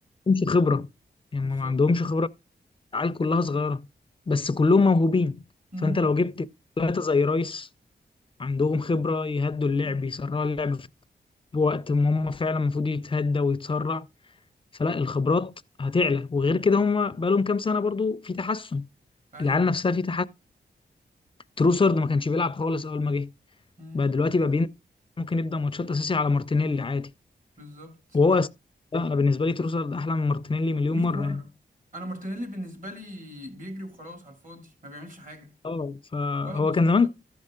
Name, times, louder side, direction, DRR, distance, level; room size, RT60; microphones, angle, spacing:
voice 1, 0.3-0.9 1.3-2.3 2.9-3.9 4.3-5.4 5.8-6.5 6.8-7.7 8.4-10.9 11.5-14.1 14.8-18.9 19.4-20.3 21.6-23.3 23.9-24.7 25.2-27.1 28.1-28.5 28.9-31.4 35.6-37.1, left 3 dB, 30° left, 0.5 m, -24 dB
voice 2, 1.4-1.8 5.7-6.1 9.8-10.1 19.3-19.6 23.8-24.2 27.6-28.2 30.9-31.5 31.9-35.5 36.4-37.1, equal, 45° right, 2.7 m, -39 dB
13.5 x 5.4 x 3.7 m
wide cardioid pair, 125°, 18 cm